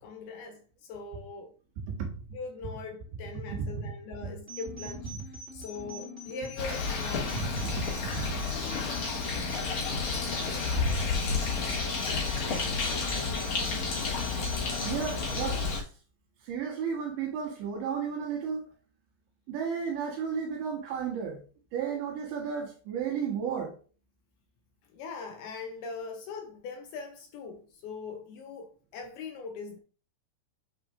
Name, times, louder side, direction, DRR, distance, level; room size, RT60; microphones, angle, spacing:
voice 1, 0.0-1.5 2.3-7.4 12.4-12.6 24.9-29.8, left 4 dB, 75° left, 2.4 m, -41 dB
voice 2, 1.9-2.2 3.5-3.8 7.3-8.4 14.8-15.9 16.4-18.7 19.5-21.4 21.7-23.7, right 6 dB, 85° right, 3.9 m, -33 dB
sound 1, 4.5-15.5, left 1 dB, 15° right, 2.7 m, -44 dB
Bird, 6.6-15.8, left 4 dB, 55° left, 2.1 m, -31 dB
9.6 x 4.8 x 2.6 m
omnidirectional pair, 5.1 m